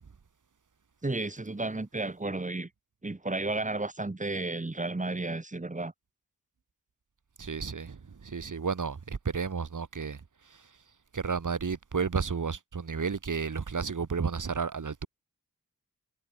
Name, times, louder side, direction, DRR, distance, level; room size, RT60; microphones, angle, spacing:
voice 1, 1.0-2.7 3.0-5.9, right 2 dB, 25° right, 2.8 m, -32 dB
voice 2, 7.4-10.8 11.1-15.1, right 5 dB, 70° right, 4.7 m, -32 dB
wide cardioid pair, 120°, 32 cm